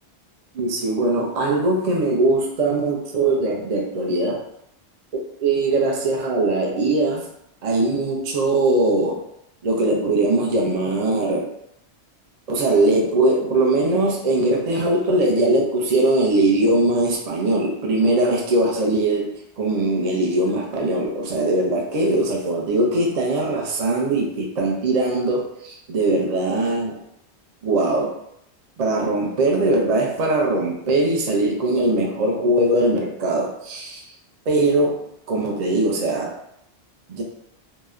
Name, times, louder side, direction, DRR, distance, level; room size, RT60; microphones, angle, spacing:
voice 1, 0.5-4.4 5.4-7.3 7.6-9.2 9.6-11.5 12.5-27.0 27.6-28.1 28.8-34.0 34.5-36.4 37.1-37.2, right 2 dB, 50° right, -1 dB, 0.5 m, -21 dB
2.8 x 2.1 x 2.3 m, 0.75 s
omnidirectional pair, 1.1 m